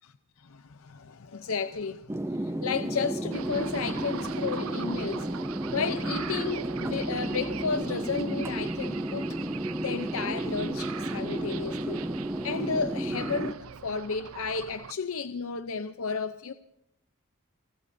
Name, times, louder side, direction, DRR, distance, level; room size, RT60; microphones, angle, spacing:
voice 1, 0.4-5.3 5.7-9.4 9.8-12.0 12.4-16.5, left 5 dB, 70° left, 0.7 m, -33 dB
sound 1, 2.1-13.5, right 1 dB, 10° right, 0.6 m, -32 dB
sound 2, 3.3-14.9, right 8 dB, 75° right, 0.6 m, -42 dB
30.0 x 13.5 x 2.7 m
head